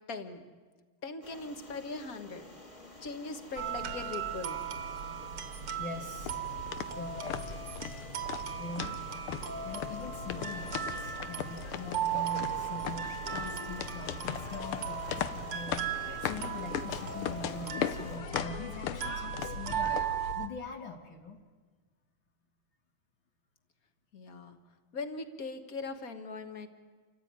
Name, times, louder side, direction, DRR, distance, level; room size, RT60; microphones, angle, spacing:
voice 1, 0.1-0.5 1.0-2.4 3.0-4.6 24.1-24.6 24.9-26.7, left 3 dB, 45° left, 8 dB, 1.8 m, -40 dB
sound 1, 1.2-18.2, left 2 dB, 15° left, 1.6 m, -51 dB
sound 2, 3.6-20.5, right 8 dB, 75° right, 2.3 m, -37 dB
voice 2, 5.8-6.4 7.0-7.6 8.6-8.9 9.6-20.0 20.3-21.4, left 3 dB, 65° left, 3 dB, 2.3 m, -43 dB
sound 3, 6.2-20.3, left 9 dB, 85° left, 1.8 m, -39 dB
28.5 x 14.5 x 9.5 m, 1.4 s
omnidirectional pair, 2.4 m